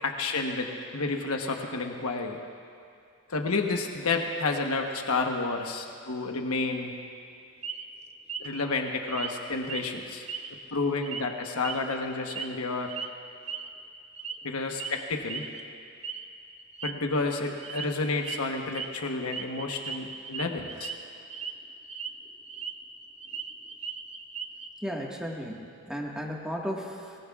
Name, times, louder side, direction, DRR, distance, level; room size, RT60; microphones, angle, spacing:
voice 1, 0.0-2.4 3.3-6.9 8.4-10.3 10.7-12.9 14.4-15.4 16.8-20.9, left 3 dB, 75° left, 3 dB, 1.1 m, -30 dB
sound 1, 7.6-7.9 8.3-8.6 9.1-9.3 9.6-9.9 10.3-10.7 11.0-11.2 11.6-12.5 12.9-13.1 13.5-13.7 14.2-14.5 14.8-15.0 15.3-15.6 16.0-16.2 16.6-16.9 17.6-17.9 18.2-18.4 18.7-18.9 19.3-20.9 21.3-21.5 21.8-22.7 23.0-24.7, right 6 dB, 30° right, 0.6 m, -37 dB
voice 2, 24.8-27.2, equal, 5° right, -2 dB, 1.6 m, -35 dB
25.0 x 19.5 x 2.4 m, 2.4 s
head